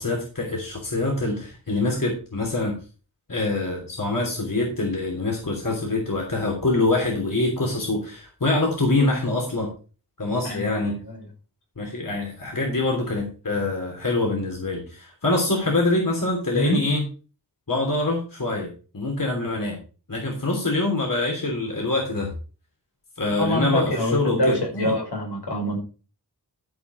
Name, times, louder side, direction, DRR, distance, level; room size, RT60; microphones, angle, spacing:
voice 1, 0.0-2.7 3.3-9.7 10.2-11.0 11.8-17.0 17.7-19.8 20.1-22.3 23.2-24.9, left 2 dB, 55° left, -1 dB, 3.3 m, -25 dB
voice 2, 10.4-11.3 16.5-16.8 23.3-25.8, left 1 dB, 85° left, -1 dB, 5.3 m, -25 dB
14.0 x 5.3 x 4.9 m, 0.36 s
wide cardioid pair, 70°, 39 cm